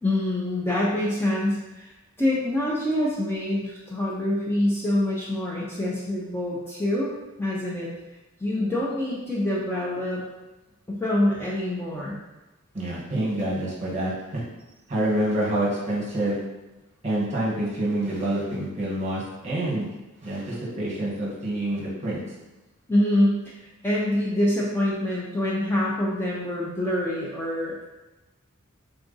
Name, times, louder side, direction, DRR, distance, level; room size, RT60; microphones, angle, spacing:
voice 1, 0.0-1.9 2.2-7.1 7.4-7.9 8.4-10.2 10.9-12.2 22.9-23.5 23.8-27.9, left 1 dB, 10° left, -5 dB, 0.5 m, -25 dB
voice 2, 12.7-14.4 14.9-16.4 17.0-19.9 20.2-22.2, right 1 dB, 30° right, -6 dB, 1.2 m, -27 dB
3.7 x 2.4 x 3.9 m, 1.1 s
head